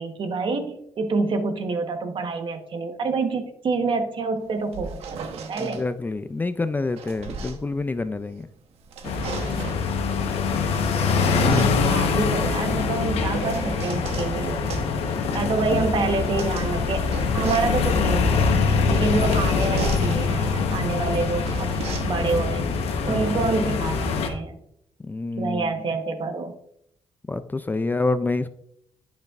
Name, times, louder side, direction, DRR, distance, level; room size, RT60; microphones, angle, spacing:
voice 1, 0.0-5.8 10.1-10.6 11.4-14.7 15.3-17.0 17.3-18.6 18.9-21.7 22.0-22.7 23.1-24.6 25.4-26.5, right 4 dB, 55° right, 6 dB, 1.1 m, -27 dB
sound 1, 4.4-5.8 6.6-8.4 8.8-9.9 10.7-14.3 14.7-23.8, right 5 dB, 90° right, 0.9 m, -37 dB
voice 2, 5.6-8.5 23.1-23.4 25.1-25.7 27.3-28.5, left 3 dB, 20° left, 12 dB, 0.3 m, -27 dB
sound 2, 9.0-24.3, left 5 dB, 85° left, 1.0 m, -24 dB
11.5 x 5.3 x 2.4 m, 0.73 s
cardioid pair, 100°, 10 cm